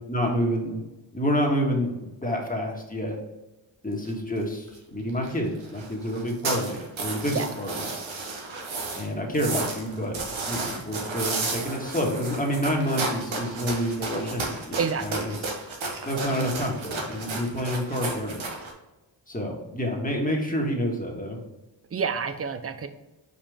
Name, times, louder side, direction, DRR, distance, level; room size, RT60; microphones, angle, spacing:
voice 1, 0.1-0.8 1.1-3.2 3.8-7.9 8.9-10.2 10.4-15.4 16.0-18.4 19.3-21.4, equal, 20° left, -1 dB, 1.6 m, -28 dB
sound 1, 4.0-4.1 4.4-4.5 4.7-4.8 5.1-5.3 5.6-9.1 9.3-18.7, right 3 dB, 90° right, 1.3 m, -33 dB
voice 2, 14.8-15.2 21.9-22.9, right 6 dB, 30° right, 9 dB, 0.6 m, -28 dB
5.3 x 5.0 x 3.5 m, 1.1 s
wide cardioid pair, 75°, 46 cm